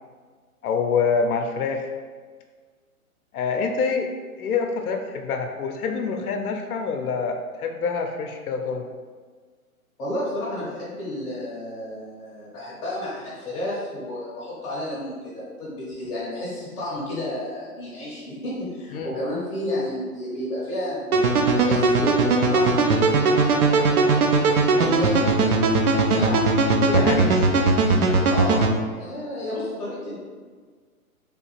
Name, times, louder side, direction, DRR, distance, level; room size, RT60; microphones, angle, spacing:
voice 1, 0.6-1.9 3.3-4.1 4.4-8.9 18.9-19.2 26.9-27.3, left 5 dB, 80° left, 5 dB, 0.6 m, -26 dB
voice 2, 10.0-21.1 21.5-27.4 28.3-28.7 29.0-30.2, left 1 dB, 10° left, -10 dB, 0.5 m, -31 dB
sound 1, 21.1-28.7, right 3 dB, 80° right, 0.6 m, -19 dB
3.2 x 2.4 x 3.0 m, 1.5 s
hypercardioid pair, 140°, 44 cm